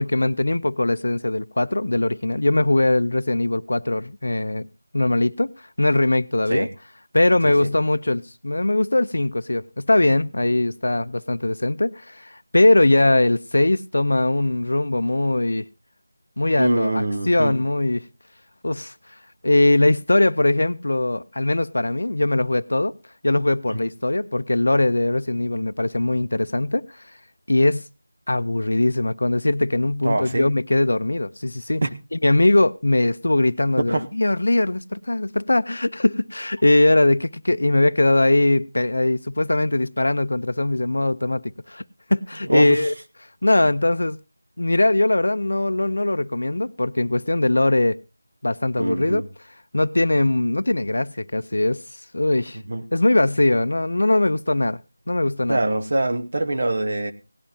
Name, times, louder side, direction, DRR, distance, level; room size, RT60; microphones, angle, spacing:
voice 1, 0.0-4.7 4.9-5.5 5.8-6.7 7.1-15.6 16.4-18.1 18.6-18.9 19.4-22.9 23.2-26.9 27.5-27.9 28.3-31.8 32.1-41.8 42.1-42.9 43.4-44.2 44.6-48.0 48.4-49.2 49.7-51.8 52.1-52.6 52.9-54.8 55.1-55.6, left 2 dB, 60° left, 0.5 m, -20 dB
voice 2, 16.6-17.5 23.7-23.8 30.0-30.5 31.8-31.9 33.9-34.0 42.5-42.9 48.8-49.2 52.7-52.8 55.5-57.1, right 2 dB, 40° right, 0.9 m, -24 dB
17.5 x 11.5 x 2.8 m
figure-of-eight pair, 180°, 0 cm